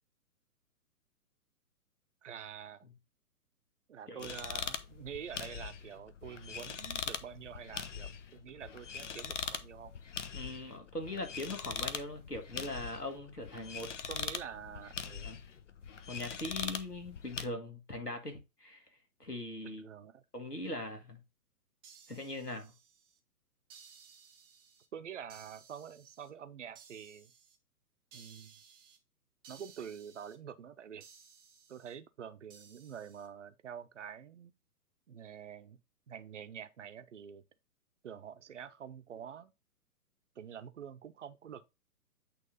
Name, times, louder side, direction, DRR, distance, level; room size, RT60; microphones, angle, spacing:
voice 1, 2.2-2.9 3.9-9.9 14.1-15.4 19.6-20.2 24.9-27.3 28.1-28.6 29.5-31.1 31.7-34.5 35.1-35.8 36.1-37.4 38.0-39.5 40.4-41.7, right 8 dB, 50° right, 0.8 m, -47 dB
sound 1, 4.2-17.4, left 7 dB, 50° left, 0.8 m, -42 dB
voice 2, 10.3-13.9 15.2-15.4 16.1-18.8 19.2-19.9 20.3-21.2 22.1-22.7, left 2 dB, 90° left, 1.7 m, -41 dB
sound 2, 21.8-23.2 23.7-24.9 25.3-26.3 26.7-27.6 28.1-29.0 29.4-30.4 31.0-31.9 32.5-33.3, right 7 dB, 15° right, 0.7 m, -58 dB
8.5 x 3.2 x 3.8 m
figure-of-eight pair, 125°, 46 cm